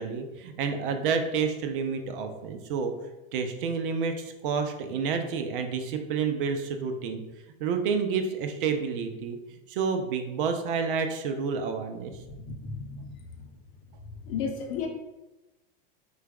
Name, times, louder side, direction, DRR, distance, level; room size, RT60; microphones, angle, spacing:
voice 1, 0.0-2.9 3.3-7.2 7.6-9.4 9.7-12.1, right 5 dB, 65° right, 6 dB, 0.5 m, -29 dB
voice 2, 12.2-13.5 14.2-14.9, left 6 dB, 45° left, 2 dB, 0.7 m, -35 dB
4.4 x 2.3 x 2.3 m, 1.0 s
hypercardioid pair, 100°, 29 cm